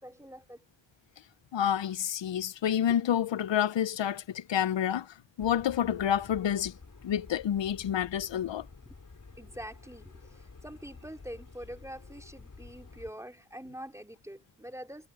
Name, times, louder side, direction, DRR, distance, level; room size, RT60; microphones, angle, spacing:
voice 1, 0.0-0.6 9.4-15.1, equal, 5° right, 4.1 m, -45 dB
voice 2, 1.5-6.7 7.0-8.7, left 10 dB, 85° left, 0.6 m, -29 dB
sound 1, 4.2-4.5 4.9-5.0 5.4-13.1, left 4 dB, 45° left, 4.4 m, -51 dB
wide cardioid pair, 110°, 43 cm